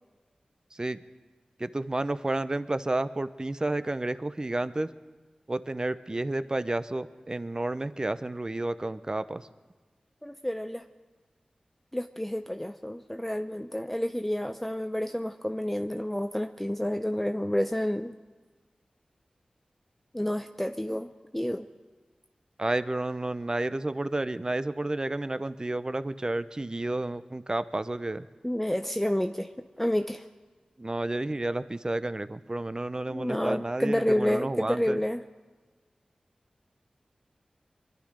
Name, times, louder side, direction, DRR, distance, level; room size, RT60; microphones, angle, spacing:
voice 1, 1.6-4.9 5.5-9.5 22.6-28.3 30.8-35.0, right 2 dB, 30° right, 13 dB, 0.7 m, -31 dB
voice 2, 10.2-10.8 11.9-18.1 20.1-21.7 28.4-29.5 29.8-30.3 33.1-35.2, left 1 dB, 10° left, 7 dB, 0.6 m, -29 dB
23.5 x 11.5 x 5.1 m, 1.3 s
cardioid pair, 40°, 2 cm